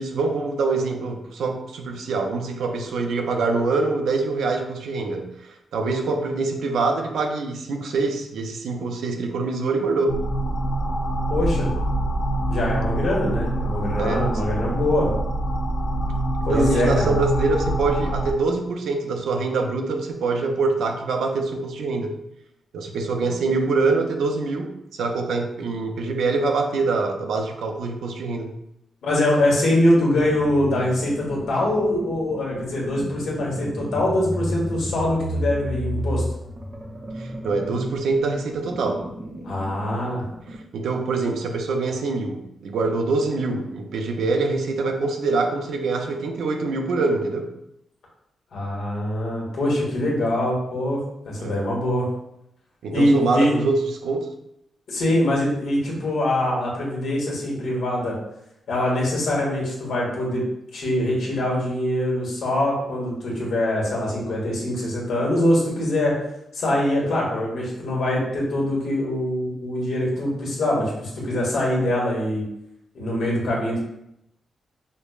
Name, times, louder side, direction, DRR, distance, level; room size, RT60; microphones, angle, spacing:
voice 1, 0.0-10.2 14.0-14.4 16.5-22.2 22.7-28.5 37.2-39.1 40.5-47.5 51.4-51.6 52.8-54.3, right 3 dB, 85° right, 4 dB, 0.4 m, -24 dB
sound 1, 10.1-18.3, right 1 dB, 55° left, 0.4 m, -25 dB
voice 2, 11.3-11.7 12.5-15.1 16.4-17.1 29.0-36.2 39.4-40.3 48.5-52.1 52.9-53.5 54.9-58.2 58.7-60.4 60.7-66.1 66.5-72.4 72.9-73.8, left 1 dB, 75° left, -4 dB, 1.2 m, -23 dB
sound 2, 30.2-40.7, equal, 25° right, 0.5 m, -33 dB
5.1 x 2.0 x 2.3 m, 0.82 s
wide cardioid pair, 150°, 0 cm